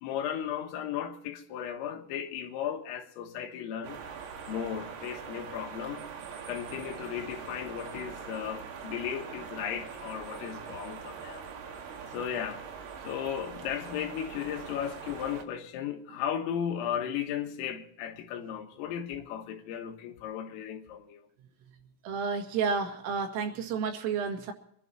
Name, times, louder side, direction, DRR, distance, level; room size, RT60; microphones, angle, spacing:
voice 1, 0.0-4.0 4.5-6.0 6.5-11.5 12.1-12.6 13.1-21.3, left 9 dB, 80° left, 4.0 m, -35 dB
sound 1, 3.8-15.4, right 6 dB, 60° right, 3.4 m, -42 dB
voice 2, 22.0-24.5, right 5 dB, 75° right, 4.4 m, -31 dB
25.5 x 11.5 x 4.3 m
omnidirectional pair, 6.0 m